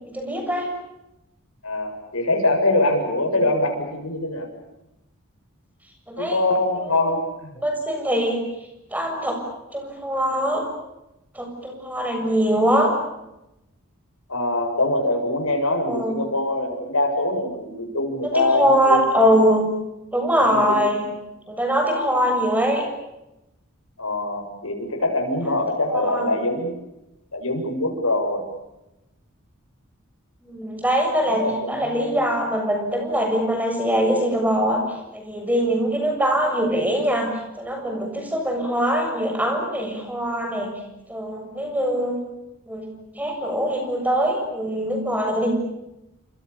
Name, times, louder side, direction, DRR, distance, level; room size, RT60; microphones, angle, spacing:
voice 1, 0.1-0.7 3.3-3.4 6.1-6.4 6.8-7.2 7.6-8.4 8.9-9.4 9.7-10.6 11.3-12.9 15.8-16.2 18.2-19.6 20.1-21.1 21.5-22.9 25.9-26.3 30.4-34.8 35.1-37.3 37.6-40.7 41.1-42.2 42.7-42.9 43.1-45.5, right 1 dB, 5° right, 3 dB, 7.2 m, -22 dB
voice 2, 1.6-4.5 6.2-7.5 14.3-19.4 20.4-20.8 24.0-26.8 27.3-28.5 31.3-32.2, left 2 dB, 85° left, 2 dB, 7.4 m, -23 dB
29.5 x 26.5 x 7.1 m, 0.93 s
head